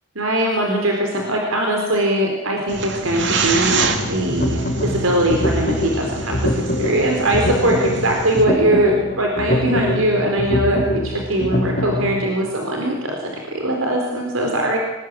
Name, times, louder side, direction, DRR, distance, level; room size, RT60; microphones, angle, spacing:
voice 1, 0.2-14.8, right 1 dB, 85° right, 1 dB, 4.2 m, -21 dB
sound 1, 2.7-8.4, right 3 dB, 55° right, 2.9 m, -26 dB
sound 2, 4.0-12.1, equal, 40° left, 4.8 m, -24 dB
26.5 x 19.5 x 9.1 m, 1.1 s
head